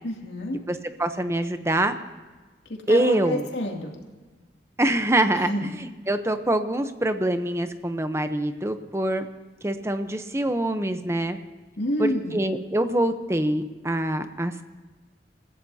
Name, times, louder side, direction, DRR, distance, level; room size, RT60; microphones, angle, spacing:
voice 1, 0.0-0.6 2.9-3.9 5.4-5.7 11.8-12.4, left 1 dB, 85° left, 0 dB, 2.6 m, -28 dB
voice 2, 0.7-1.9 2.9-3.5 4.8-5.5 5.8-9.3 9.6-11.4 12.0-14.6, right 1 dB, 15° right, 9 dB, 0.7 m, -25 dB
28.0 x 15.5 x 2.8 m, 1.3 s
head